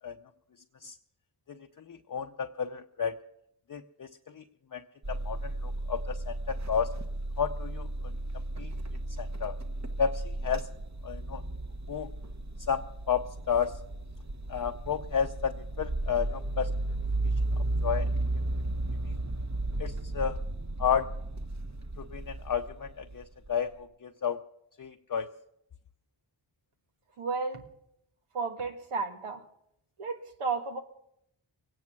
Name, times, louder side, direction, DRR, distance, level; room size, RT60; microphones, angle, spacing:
voice 1, 1.9-3.2 3.7-4.1 4.3-4.4 4.7-6.9 7.4-7.9 8.6-8.7 9.2-9.5 10.0-10.7 11.0-11.4 11.9-12.1 12.7-13.8 14.5-16.7 17.8-18.1 19.1-19.2 19.8-20.4 20.8-21.1 22.0-24.4 24.8-25.3, left 7 dB, 40° left, 6 dB, 0.7 m, -32 dB
sound 1, 5.0-23.5, right 2 dB, 35° right, 1.3 m, -34 dB
voice 2, 27.2-27.6 28.3-29.4 30.0-30.8, right 4 dB, 85° right, 6 dB, 1.5 m, -33 dB
22.0 x 9.5 x 6.0 m, 0.77 s
cardioid pair, 40°, 49 cm